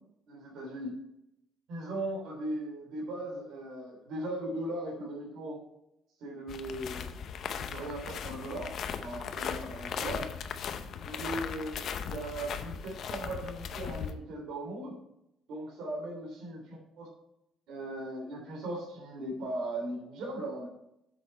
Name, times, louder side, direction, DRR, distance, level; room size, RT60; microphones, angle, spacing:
voice 1, 0.3-0.9 1.7-5.6 6.2-7.1 7.7-8.7 9.0-10.3 11.0-14.9 15.5-16.6 17.0-17.1 17.7-20.7, right 1 dB, 70° right, -2 dB, 3.2 m, -38 dB
sound 1, 6.5-14.1, left 7 dB, 50° left, 0.7 m, -38 dB
8.3 x 6.4 x 4.4 m, 0.81 s
cardioid pair, 160°, 0 cm